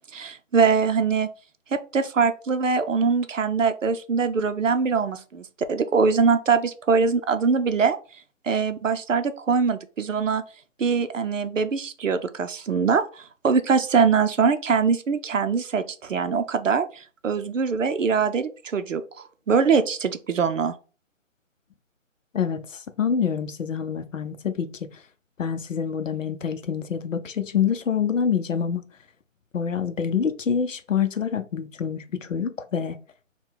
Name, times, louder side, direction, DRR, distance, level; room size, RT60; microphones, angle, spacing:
voice 1, 0.1-1.3 1.7-8.0 8.4-10.4 10.8-20.7, right 5 dB, 70° right, 0.6 m, -23 dB
voice 2, 22.3-24.9 25.4-28.8 29.5-33.0, left 7 dB, 70° left, 0.7 m, -26 dB
3.7 x 2.3 x 4.4 m
figure-of-eight pair, 170°, 40 cm